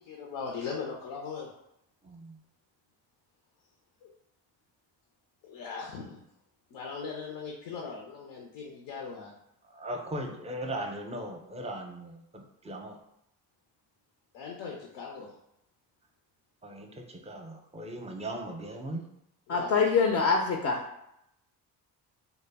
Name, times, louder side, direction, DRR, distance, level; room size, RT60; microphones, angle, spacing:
voice 1, 0.0-1.5 4.0-4.1 5.4-6.2 6.7-9.3 14.3-15.3 19.5-19.7, left 5 dB, 85° left, -1 dB, 0.6 m, -39 dB
voice 2, 2.0-2.4 9.7-13.0 16.6-19.0, right 1 dB, 15° right, 2 dB, 0.5 m, -38 dB
voice 3, 19.5-20.8, left 5 dB, 40° left, 1 dB, 0.4 m, -24 dB
2.2 x 2.0 x 3.3 m, 0.80 s
supercardioid pair, 55°, 41 cm